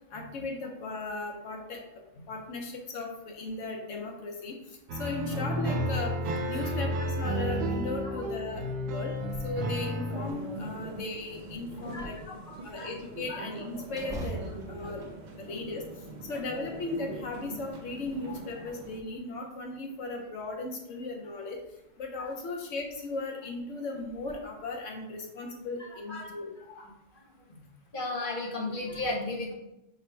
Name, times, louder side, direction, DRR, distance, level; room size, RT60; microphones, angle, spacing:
voice 1, 0.1-1.8 2.3-4.6 4.9-6.2 6.5-9.1 9.4-12.2 12.6-15.1 15.4-15.8 16.2-21.6 22.0-26.5, left 3 dB, 75° left, 1 dB, 1.2 m, -37 dB
sound 1, 4.9-10.3, equal, 90° right, 1.0 m, -31 dB
sound 2, 9.1-9.6 10.1-10.2 10.7-11.5 13.9-15.9 16.3-17.1 17.7-18.5 19.4-20.1 21.6-21.7 22.2-22.4 22.9-23.0 24.1-24.3, right 2 dB, 5° right, 0.7 m, -44 dB
sound 3, 10.1-19.0, right 2 dB, 60° right, 0.4 m, -43 dB
voice 2, 11.9-12.9 13.3-13.5 14.8-15.0 22.2-22.3 26.1-26.3 26.8-27.2 27.5-27.7 27.9-29.5, left 2 dB, 50° left, -2 dB, 0.9 m, -36 dB
5.0 x 2.2 x 4.4 m, 0.89 s
omnidirectional pair, 1.3 m